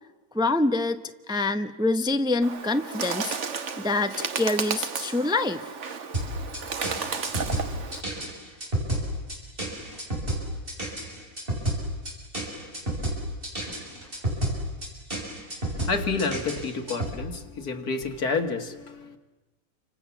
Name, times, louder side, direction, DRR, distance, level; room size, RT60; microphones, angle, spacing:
voice 1, 0.3-1.0 1.3-3.4 3.8-5.7, left 2 dB, 5° right, 9 dB, 0.6 m, -25 dB
Bird, 2.4-8.0, right 5 dB, 55° right, 1.5 m, -33 dB
sound 1, 6.1-17.2, right 1 dB, 35° right, 6.6 m, -31 dB
voice 2, 15.8-19.2, left 4 dB, 90° left, 5 dB, 2.5 m, -29 dB
29.0 x 26.0 x 7.2 m, 1.1 s
omnidirectional pair, 1.6 m